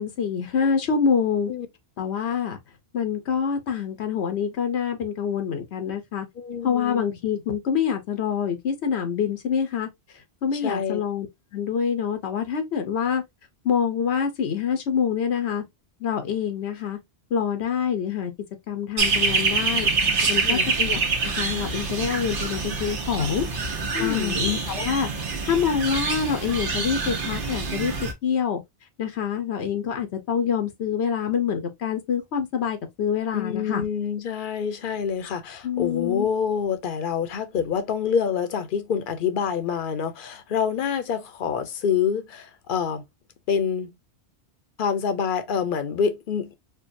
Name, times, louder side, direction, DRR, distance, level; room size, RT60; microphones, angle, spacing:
voice 1, 0.0-1.5 2.0-2.6 2.9-6.3 6.6-9.9 10.4-11.3 11.5-13.2 13.6-15.6 16.0-17.0 17.3-18.3 18.7-19.9 20.3-23.5 24.0-25.1 25.4-28.6 29.0-33.8 35.6-36.3, left 7 dB, 90° left, 1.1 m, -26 dB
voice 2, 6.4-7.0 10.6-11.0 20.4-20.6 23.9-24.4 33.3-43.0 43.5-44.0 44.8-46.5, left 7 dB, 60° left, 0.8 m, -26 dB
sound 1, 19.0-28.1, right 4 dB, 55° right, 1.0 m, -26 dB
4.5 x 2.3 x 2.6 m
omnidirectional pair, 1.1 m